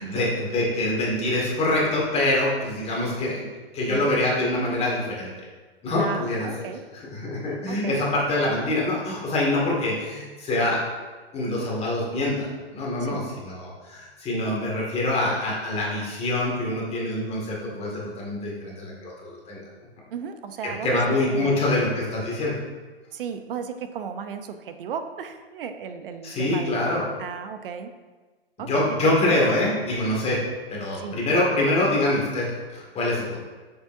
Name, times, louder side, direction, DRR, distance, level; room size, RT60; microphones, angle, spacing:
voice 1, 0.0-3.4 3.7-5.3 5.8-6.5 6.9-10.8 11.3-19.6 20.6-22.6 26.2-27.0 28.6-30.4 30.7-33.4, left 1 dB, 20° left, -4 dB, 2.1 m, -25 dB
voice 2, 6.0-6.8 7.7-8.1 13.0-13.3 20.1-21.0 21.3-21.8 23.1-26.9 27.2-27.9 28.6-29.3 30.9-31.2, right 7 dB, 60° right, 8 dB, 0.7 m, -35 dB
8.0 x 6.7 x 2.7 m, 1.3 s
figure-of-eight pair, 115°, 32 cm